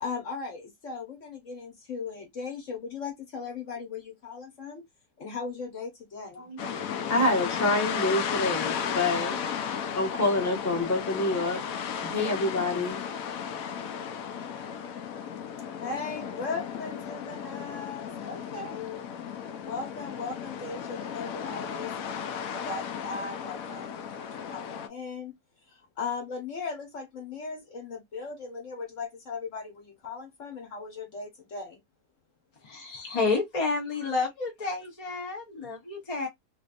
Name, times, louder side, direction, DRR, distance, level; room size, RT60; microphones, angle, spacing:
voice 1, 0.0-4.8 5.2-6.4 15.8-19.0 19.6-22.2 22.7-23.9 24.5-24.6 24.9-25.3 26.0-29.6 30.0-31.7 32.8-33.0, left 4 dB, 50° left, 1.3 m, -37 dB
voice 2, 6.3-9.4 9.9-11.6 12.0-13.0, left 2 dB, 10° left, 1.1 m, -27 dB
sound 1, 6.6-24.9, left 7 dB, 70° left, 0.9 m, -34 dB
voice 3, 32.6-36.3, left 4 dB, 35° left, 0.6 m, -30 dB
3.3 x 3.1 x 2.4 m
omnidirectional pair, 1.9 m